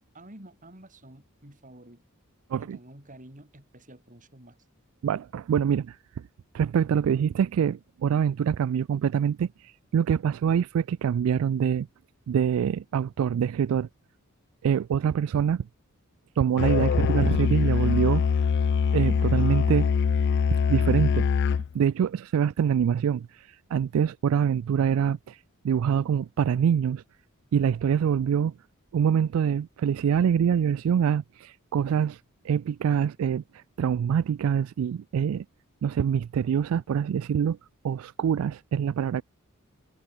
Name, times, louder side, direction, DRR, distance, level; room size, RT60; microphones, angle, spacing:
voice 1, 0.1-2.0 2.5-4.6, right 1 dB, 35° right, 5.2 m, -49 dB
voice 2, 5.0-6.2 6.5-11.9 12.3-13.9 14.6-15.7 16.4-18.2 18.9-19.9 20.5-21.3 21.7-27.0 27.5-28.5 28.9-35.4 35.8-37.6 37.8-39.2, right 8 dB, 70° right, 0.3 m, -25 dB
Musical instrument, 16.6-21.7, left 6 dB, 55° left, 0.3 m, -23 dB
head